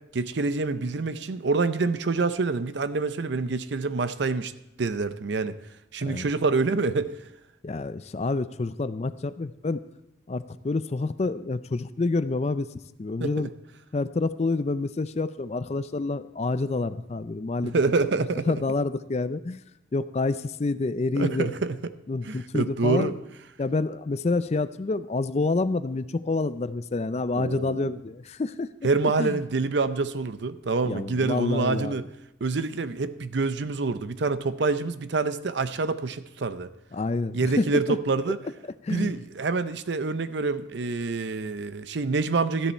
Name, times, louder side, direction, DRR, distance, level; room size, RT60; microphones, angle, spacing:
voice 1, 0.1-4.5 4.8-5.6 5.9-7.1 13.2-13.5 17.7-18.5 21.1-21.8 22.2-23.1 27.3-28.0 28.8-32.0 32.4-36.7 37.3-38.4 38.9-42.7, right 3 dB, 65° right, 12 dB, 0.6 m, -26 dB
voice 2, 7.6-9.8 10.3-12.7 13.0-13.5 13.9-17.8 18.5-19.6 19.9-21.5 22.1-23.1 23.6-28.7 29.0-29.4 30.8-32.0 36.9-38.0 38.8-39.1, left 3 dB, 35° left, 14 dB, 0.4 m, -28 dB
13.5 x 10.0 x 4.4 m, 0.95 s
head